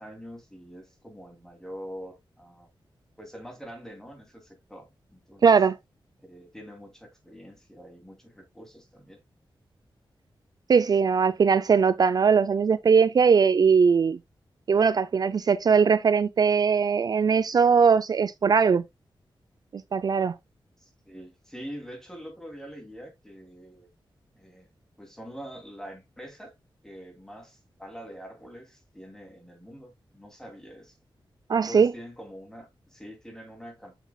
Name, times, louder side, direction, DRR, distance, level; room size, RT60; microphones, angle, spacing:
voice 1, 0.0-2.7 3.2-5.6 6.2-9.2 20.8-23.9 24.3-24.7 25.0-26.5 26.8-31.0 31.5-34.0, equal, 5° left, 2.6 m, -44 dB
voice 2, 5.4-5.7 10.7-14.2 14.7-18.8 19.7-20.3 31.5-31.9, right 6 dB, 45° right, 0.3 m, -20 dB
8.0 x 6.0 x 2.2 m
wide cardioid pair, 155°, 9 cm